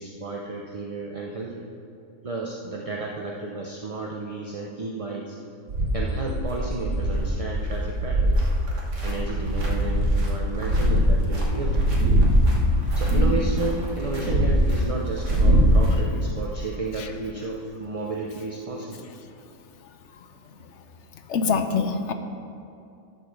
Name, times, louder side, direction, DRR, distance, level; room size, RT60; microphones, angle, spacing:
voice 1, 0.0-1.7 2.2-5.4 5.9-8.4 9.0-11.9 12.9-19.1, right 3 dB, 35° right, -2 dB, 0.5 m, -32 dB
sound 1, 5.7-15.9, equal, 60° right, 1.7 m, -22 dB
voice 2, 21.3-22.1, left 5 dB, 65° left, 7 dB, 0.9 m, -25 dB
12.5 x 5.3 x 6.4 m, 2.6 s
omnidirectional pair, 1.5 m